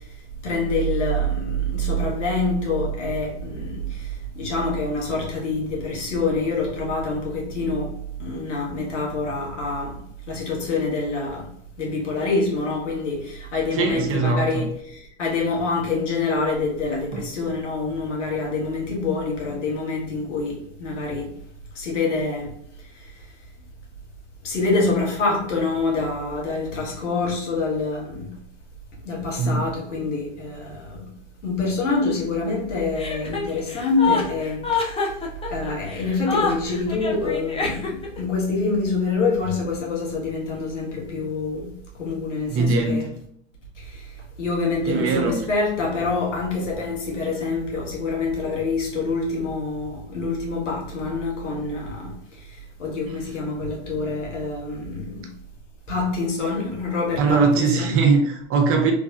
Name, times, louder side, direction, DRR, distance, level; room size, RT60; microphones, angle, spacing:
voice 1, 0.4-7.9 8.2-10.0 10.3-11.5 11.8-21.3 21.7-22.5 22.9-23.1 24.4-28.4 29.0-31.1 31.4-35.1 35.5-41.7 42.0-43.1 43.8-55.3 55.9-57.9, left 3 dB, 85° left, 1.5 m, -26 dB
voice 2, 13.7-14.7 17.1-17.2 29.4-29.7 42.5-43.0 44.9-45.4 57.2-58.9, right 4 dB, 35° right, 0.9 m, -21 dB
Chuckle chortle, 32.9-38.2, left 4 dB, 15° left, 0.7 m, -26 dB
3.5 x 3.3 x 2.7 m
hypercardioid pair, 90°, 36 cm